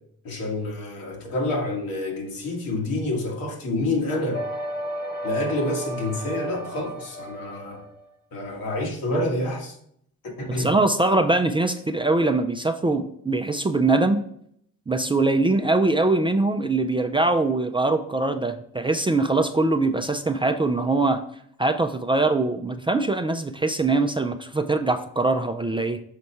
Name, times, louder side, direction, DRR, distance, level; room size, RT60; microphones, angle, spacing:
voice 1, 0.2-4.5 5.2-7.8 8.3-9.8 10.2-10.7, left 2 dB, 75° left, 1.9 m, -28 dB
sound 1, 4.3-8.0, equal, 30° left, 1.0 m, -33 dB
voice 2, 10.5-14.3 14.9-21.2 21.6-26.0, right 2 dB, 15° right, 0.4 m, -22 dB
6.7 x 4.2 x 4.5 m
cardioid pair, 80°, 35 cm